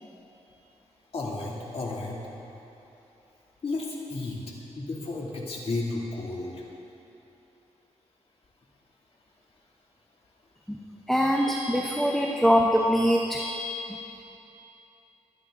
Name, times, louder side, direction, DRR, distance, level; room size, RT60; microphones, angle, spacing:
voice 1, 1.1-2.2 3.6-4.4 4.8-6.6, left 2 dB, 60° left, -3 dB, 2.5 m, -32 dB
voice 2, 10.7-13.8, equal, ahead, 0 dB, 0.9 m, -24 dB
23.0 x 9.2 x 3.8 m, 3.0 s
wide cardioid pair, 95°, 12 cm